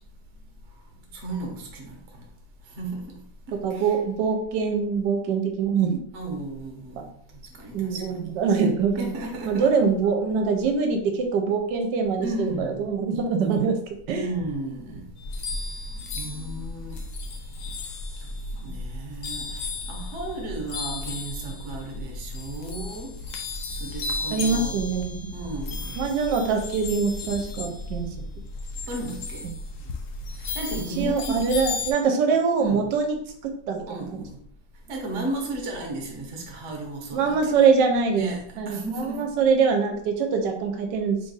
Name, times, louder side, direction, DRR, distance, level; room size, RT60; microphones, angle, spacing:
voice 1, 1.1-2.3 2.7-3.2 3.5-4.0 6.1-8.3 9.0-10.0 12.2-12.9 14.1-15.1 15.5-17.1 17.5-17.7 18.2-18.3 18.6-23.3 23.6-24.8 25.3-26.0 27.5-27.6 28.9-29.8 30.4-31.5 32.2-32.3 32.6-32.9 33.9-34.4 34.9-37.7 38.1-39.4, right 2 dB, 50° right, 0.9 m, -35 dB
voice 2, 3.6-6.0 7.0-7.1 7.7-9.2 9.5-13.8 14.1-14.3 24.3-25.3 26.0-28.1 31.0-33.2 33.4-34.0 37.1-38.3 38.6-41.2, right 5 dB, 70° right, 1.2 m, -24 dB
sound 1, 15.2-31.9, left 3 dB, 75° left, 1.0 m, -34 dB
3.3 x 2.6 x 3.9 m
omnidirectional pair, 2.1 m